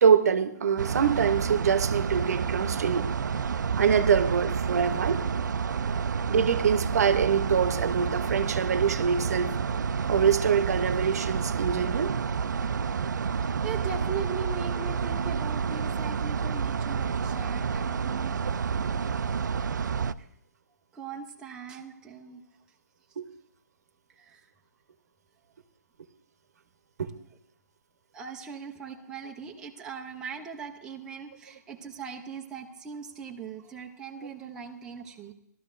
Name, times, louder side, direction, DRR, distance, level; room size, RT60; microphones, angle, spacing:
voice 1, 0.0-3.1 3.8-5.3 6.3-9.6 10.1-12.1 23.2-23.3 27.0-27.1, right 7 dB, 60° right, 0.8 m, -24 dB
sound 1, 0.8-20.1, right 6 dB, 80° right, 0.4 m, -29 dB
voice 2, 12.8-18.4 20.2-20.3 20.9-22.4 24.1-24.5 28.1-35.3, right 6 dB, 5° right, 0.5 m, -40 dB
16.0 x 12.5 x 2.5 m
hypercardioid pair, 155°, 10 cm